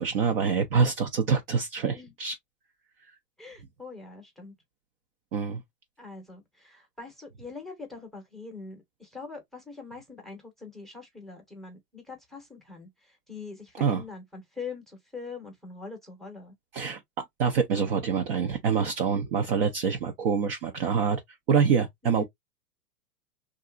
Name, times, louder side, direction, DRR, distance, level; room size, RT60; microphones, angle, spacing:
voice 1, 0.0-2.4 5.3-5.6 13.8-14.0 16.7-17.0 17.4-21.2 21.5-22.2, right 6 dB, 40° right, 0.4 m, -25 dB
voice 2, 3.4-4.5 6.0-16.5 22.0-22.2, left 4 dB, ahead, 0.7 m, -43 dB
2.7 x 2.4 x 2.4 m
hypercardioid pair, 130°, 48 cm